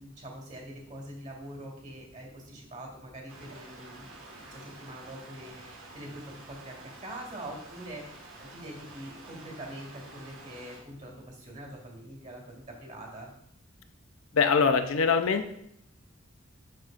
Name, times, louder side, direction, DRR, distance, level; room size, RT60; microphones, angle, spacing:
voice 1, 0.0-4.2 4.5-13.3, right 1 dB, 40° right, 0 dB, 2.3 m, -44 dB
sound 1, 3.3-10.8, right 2 dB, 90° right, 1.7 m, -49 dB
voice 2, 14.3-15.5, left 5 dB, 80° left, 8 dB, 0.6 m, -23 dB
7.7 x 7.0 x 2.5 m, 0.72 s
head